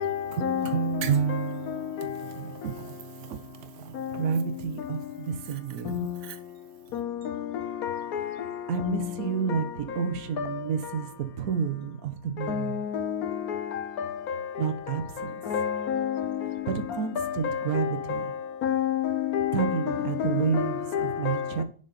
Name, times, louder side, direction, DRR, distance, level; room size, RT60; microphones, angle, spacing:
voice 1, 0.0-4.2 6.2-6.4, right 8 dB, 75° right, 0.6 m, -32 dB
voice 2, 4.1-6.1 8.7-12.9 14.6-15.4 16.7-18.4 19.5-21.6, right 7 dB, 60° right, 1.3 m, -30 dB
voice 3, 7.8-8.2 10.4-10.5 12.5-13.1 15.5-16.1 17.2-17.8 18.6-20.3 20.5-20.7 20.9-21.4, left 9 dB, 65° left, 1.1 m, -28 dB
7.0 x 5.6 x 4.0 m
omnidirectional pair, 1.9 m